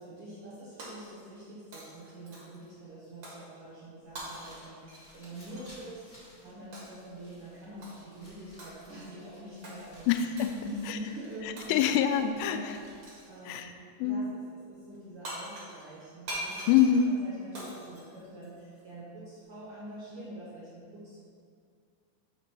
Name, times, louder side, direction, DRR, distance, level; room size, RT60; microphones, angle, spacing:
voice 1, 0.0-10.1 10.5-11.7 12.4-12.9 13.3-16.7 17.1-21.3, right 1 dB, 80° right, -9 dB, 1.2 m, -45 dB
Shatter, 0.8-1.5 1.7-2.7 3.2-3.5 4.1-5.7 6.7-7.1 7.8-8.1 8.6-9.1 9.6-9.8 10.4-10.6 11.6-12.1 13.0-13.4 14.9-15.0 15.2-18.8, right 1 dB, 65° right, 1.2 m, -43 dB
sound 1, 4.0-13.3, left 1 dB, 55° left, 0.6 m, -57 dB
voice 2, 10.1-10.6 10.9-11.0 11.7-12.8 13.5-13.7 14.0-14.3 16.7-17.1, left 8 dB, 85° left, 7 dB, 2.6 m, -25 dB
5.3 x 5.1 x 6.0 m, 2.2 s
omnidirectional pair, 4.8 m